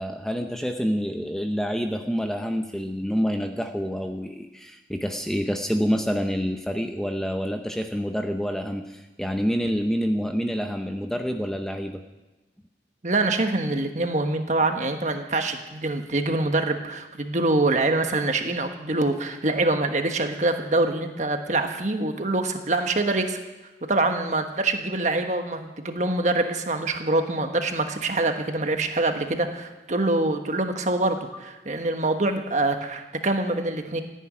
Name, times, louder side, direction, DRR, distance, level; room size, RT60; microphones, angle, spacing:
voice 1, 0.0-12.0, equal, 5° left, 5 dB, 0.7 m, -27 dB
voice 2, 13.0-23.4 23.9-34.0, right 2 dB, 40° right, 6 dB, 1.4 m, -25 dB
15.0 x 9.4 x 9.6 m, 1.1 s
head